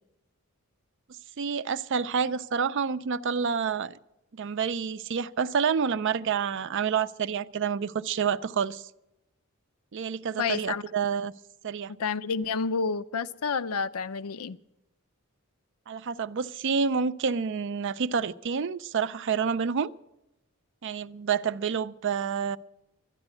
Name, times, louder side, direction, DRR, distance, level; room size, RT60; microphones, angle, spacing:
voice 1, 1.4-4.0 4.3-8.8 9.9-11.3 11.6-11.9 15.9-19.9 20.8-22.6, right 6 dB, 55° right, 0.4 m, -28 dB
voice 2, 10.4-10.8 12.0-14.6, left 5 dB, 85° left, 0.5 m, -29 dB
12.5 x 10.5 x 8.2 m
head